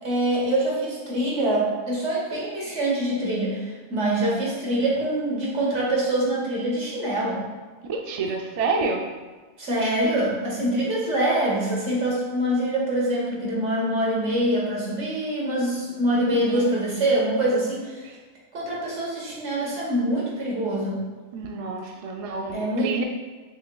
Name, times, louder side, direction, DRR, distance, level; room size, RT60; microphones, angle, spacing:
voice 1, 0.0-7.4 9.6-18.2 18.5-21.0 22.5-23.0, right 1 dB, 80° right, -4 dB, 1.5 m, -25 dB
voice 2, 7.9-9.0 16.3-16.7 21.3-23.0, right 4 dB, 65° right, 2 dB, 0.3 m, -28 dB
6.3 x 3.1 x 2.3 m, 1.3 s
omnidirectional pair, 1.2 m